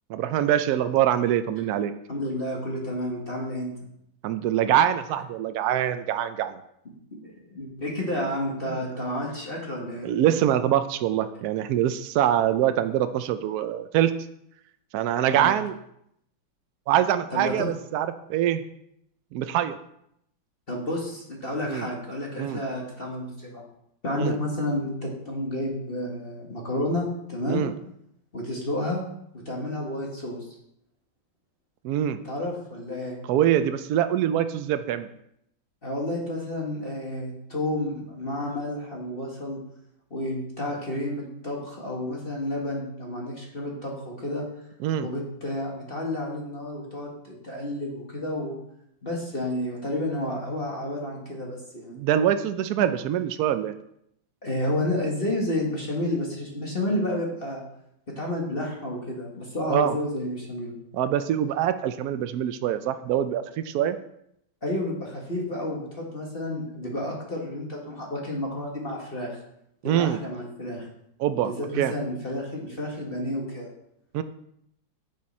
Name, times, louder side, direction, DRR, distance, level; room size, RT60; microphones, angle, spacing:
voice 1, 0.1-1.9 4.2-6.6 8.7-8.8 10.0-14.1 14.9-15.8 16.9-18.6 19.3-19.8 21.7-21.9 22.4-22.6 24.2-24.4 27.5-27.7 31.8-32.2 33.3-35.1 44.8-45.1 51.9-53.7 59.7-59.9 60.9-64.0 69.8-70.2 71.2-71.9 74.1-74.2, right 11 dB, 85° right, 10 dB, 0.8 m, -24 dB
voice 2, 2.1-3.7 7.1-10.1 15.3-15.5 17.3-17.7 20.7-23.7 24.0-27.6 28.3-29.0 29.3-30.4 32.2-33.2 35.8-39.6 40.1-44.4 45.0-48.6 49.0-52.0 54.4-57.6 58.1-60.8 64.6-69.4 69.8-70.9 71.4-73.7, left 1 dB, 30° left, -2 dB, 1.8 m, -30 dB
9.4 x 7.4 x 4.3 m, 0.74 s
omnidirectional pair, 2.2 m